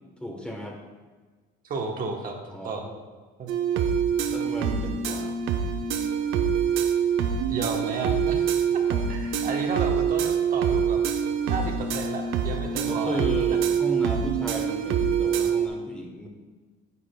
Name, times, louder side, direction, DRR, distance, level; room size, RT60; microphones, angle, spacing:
voice 1, 0.2-0.8 2.5-2.9 4.3-5.4 12.9-16.3, equal, 5° left, 0 dB, 1.0 m, -35 dB
voice 2, 1.6-2.4 2.6-2.9 3.4-3.5 7.5-8.5 9.1-11.0 11.5-13.2, right 3 dB, 45° right, 2 dB, 1.1 m, -32 dB
sound 1, 3.5-15.7, right 7 dB, 75° right, 0.7 m, -25 dB
9.6 x 8.5 x 2.3 m, 1.4 s
cardioid pair, 125°, 20 cm